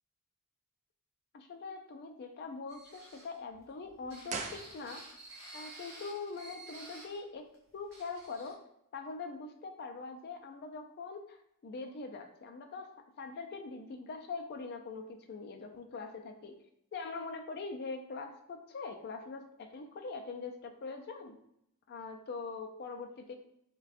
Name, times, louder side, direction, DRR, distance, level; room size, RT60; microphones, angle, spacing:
voice 1, 1.3-5.0 5.5-7.5 7.7-8.6 8.9-11.4 11.6-16.6 16.9-21.4 21.9-23.4, left 4 dB, 45° left, 4 dB, 0.3 m, -43 dB
sound 1, 2.7-7.2 7.5-7.6 7.9-8.5, right 2 dB, 15° right, 1.2 m, -51 dB
sound 2, 4.3-5.4 5.6-5.7, right 5 dB, 30° right, 0.3 m, -41 dB
5.1 x 2.2 x 2.4 m, 0.77 s
head